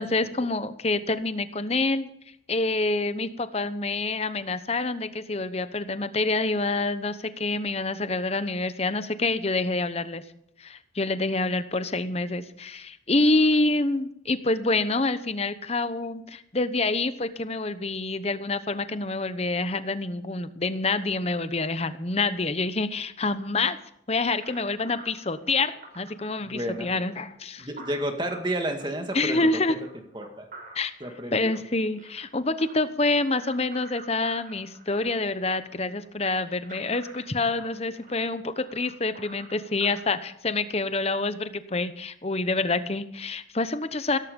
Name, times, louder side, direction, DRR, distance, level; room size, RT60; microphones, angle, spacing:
voice 1, 0.0-2.1 2.5-10.2 10.6-23.8 24.1-27.7 29.1-29.8 30.7-30.9 31.3-44.2, left 2 dB, 30° left, 12 dB, 0.9 m, -27 dB
sound 1, 24.4-40.0, right 2 dB, 45° right, 6.1 m, -48 dB
voice 2, 26.5-26.9 27.6-29.8 30.1-30.5 31.0-31.6, right 1 dB, 25° right, 5 dB, 2.0 m, -31 dB
17.0 x 14.5 x 5.3 m, 0.74 s
head